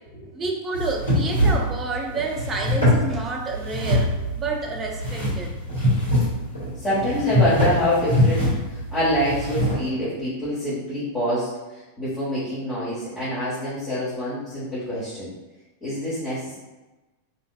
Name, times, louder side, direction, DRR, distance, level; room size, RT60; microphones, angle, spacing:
voice 1, 0.3-5.5, right 3 dB, 25° right, 1 dB, 0.5 m, -29 dB
sound 1, 0.7-9.7, left 1 dB, 85° left, 1.5 m, -23 dB
voice 2, 6.7-15.3 15.8-16.6, equal, 25° left, -13 dB, 1.1 m, -26 dB
2.8 x 2.6 x 2.3 m, 1.1 s
figure-of-eight pair, 90°, 0 cm